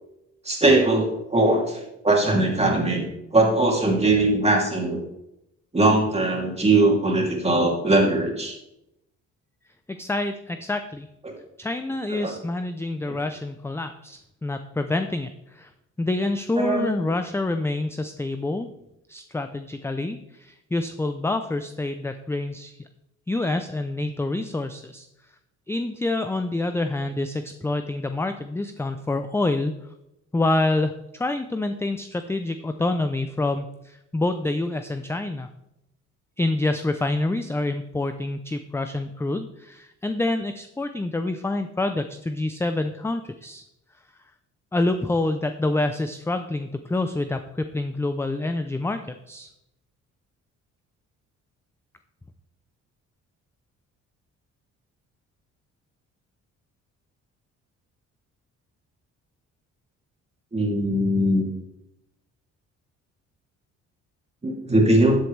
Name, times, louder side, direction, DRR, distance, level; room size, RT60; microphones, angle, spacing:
voice 1, 0.4-3.0 3.3-5.0 5.7-8.5 11.2-11.3 12.1-12.3 13.1-13.2 16.6-16.9 60.5-61.5 64.4-65.2, right 2 dB, 20° right, 0 dB, 2.8 m, -20 dB
voice 2, 9.9-11.1 11.6-15.7 16.0-18.7 19.1-22.8 23.3-25.1 25.7-29.8 30.3-35.5 36.4-43.6 44.7-49.0 49.3-49.5, left 2 dB, 10° left, 8 dB, 0.5 m, -27 dB
12.5 x 7.7 x 3.3 m, 0.85 s
cardioid pair, 90°, 30 cm